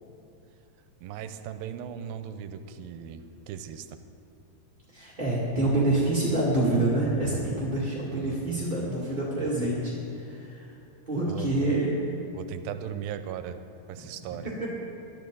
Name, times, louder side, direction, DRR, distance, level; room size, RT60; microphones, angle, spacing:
voice 1, 1.0-4.0 8.2-8.7 11.3-11.8 12.3-13.6 13.9-14.5, right 9 dB, 85° right, 9 dB, 2.5 m, -38 dB
voice 2, 4.9-10.6 11.1-12.2 14.3-14.7, right 2 dB, 15° right, -8 dB, 1.6 m, -27 dB
21.5 x 12.5 x 3.9 m, 2.7 s
omnidirectional pair, 4.2 m